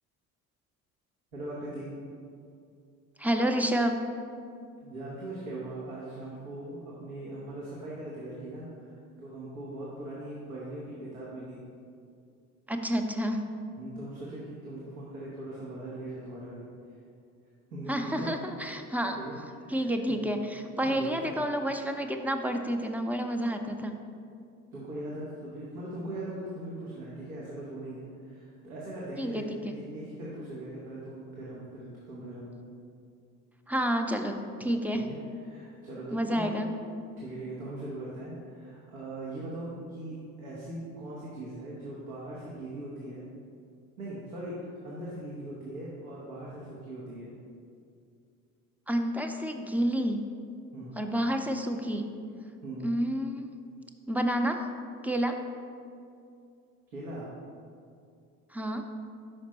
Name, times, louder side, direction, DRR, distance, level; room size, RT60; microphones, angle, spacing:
voice 1, 1.3-1.9 4.8-11.6 13.8-16.7 17.7-18.3 19.2-20.2 20.8-21.3 24.7-32.5 34.9-35.2 35.5-36.7 37.2-43.2 44.0-47.3 50.7-51.0 52.6-52.9 56.9-57.3, right 1 dB, 85° right, -7 dB, 1.1 m, -40 dB
voice 2, 3.2-4.1 12.7-13.4 17.9-19.2 19.7-24.0 29.2-29.3 33.7-35.1 36.1-36.7 48.9-50.2 51.0-52.1 52.8-53.5 54.1-54.6 55.0-55.4 58.5-58.9, equal, 5° right, 5 dB, 0.4 m, -29 dB
5.2 x 5.1 x 4.2 m, 2.4 s
hypercardioid pair, 60°, 42 cm